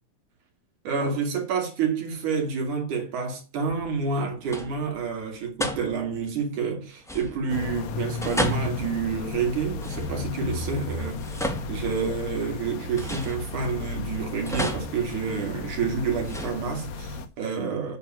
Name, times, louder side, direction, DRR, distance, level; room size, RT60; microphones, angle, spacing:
voice 1, 0.8-18.0, right 5 dB, 85° right, 4.0 m, -29 dB
sound 1, 3.7-4.1 4.4-5.0 5.6-6.2 7.0-7.7 8.2-10.4 11.0-12.4 12.9-13.9 14.4-15.7 16.2-17.1, equal, 5° left, 0.5 m, -34 dB
sound 2, 7.5-17.3, left 3 dB, 70° left, 2.2 m, -34 dB
9.2 x 6.2 x 7.8 m
omnidirectional pair, 3.4 m